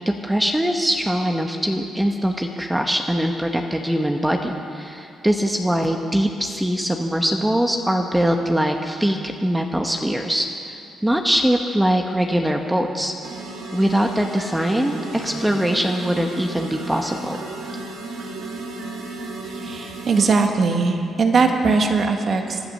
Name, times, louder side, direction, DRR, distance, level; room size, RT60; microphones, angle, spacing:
voice 1, 0.1-13.1 13.7-17.4, equal, 10° right, 3 dB, 1.0 m, -22 dB
sound 1, 13.2-20.3, right 2 dB, 85° right, 2.1 m, -34 dB
voice 2, 19.4-22.6, right 4 dB, 50° right, 4 dB, 1.7 m, -20 dB
19.5 x 11.0 x 6.5 m, 2.6 s
cardioid pair, 90°, 0 cm